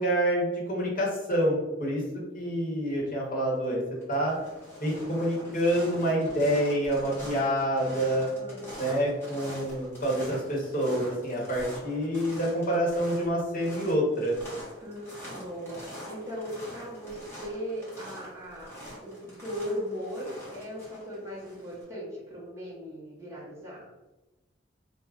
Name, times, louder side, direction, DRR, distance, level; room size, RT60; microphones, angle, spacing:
voice 1, 0.0-2.0 2.3-3.8 4.1-4.3 4.8-8.3 8.8-14.3, equal, 45° left, -4 dB, 0.9 m, -27 dB
sound 1, 3.3-3.6 4.0-21.8, equal, 15° left, 0.9 m, -44 dB
voice 2, 8.3-8.9 14.8-15.8 16.1-18.8 19.0-23.9, equal, 15° right, -7 dB, 0.7 m, -38 dB
2.3 x 2.0 x 3.5 m, 1.1 s
head